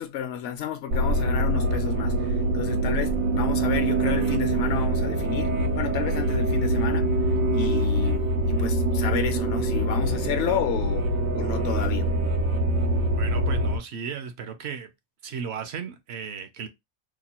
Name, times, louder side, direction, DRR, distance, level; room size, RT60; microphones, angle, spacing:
voice 1, 0.0-2.3 2.5-7.1 7.5-12.2, left 8 dB, 60° left, 0.8 m, -31 dB
sound 1, 0.9-13.8, right 1 dB, 80° right, 1.1 m, -24 dB
voice 2, 13.2-14.9 15.2-16.7, right 6 dB, 60° right, 0.8 m, -35 dB
2.9 x 2.2 x 4.2 m
omnidirectional pair, 1.4 m